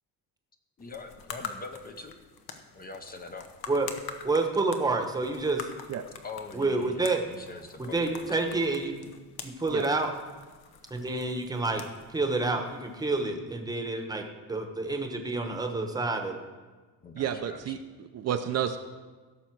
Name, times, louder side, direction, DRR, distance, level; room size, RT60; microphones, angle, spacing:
sound 1, 0.8-13.3, left 6 dB, 80° left, 1.1 m, -46 dB
voice 1, 0.8-2.2 2.7-3.5 6.2-8.5 17.0-17.8, left 4 dB, 25° left, 6 dB, 0.7 m, -43 dB
voice 2, 4.2-5.7 6.5-7.2 7.8-9.0 9.4-10.1 10.9-11.8 12.1-14.2 14.5-16.3, right 3 dB, 10° right, 4 dB, 0.9 m, -28 dB
voice 3, 17.2-18.8, right 9 dB, 45° right, 7 dB, 0.5 m, -31 dB
16.5 x 6.6 x 4.6 m, 1.4 s
cardioid pair, 165°, 36 cm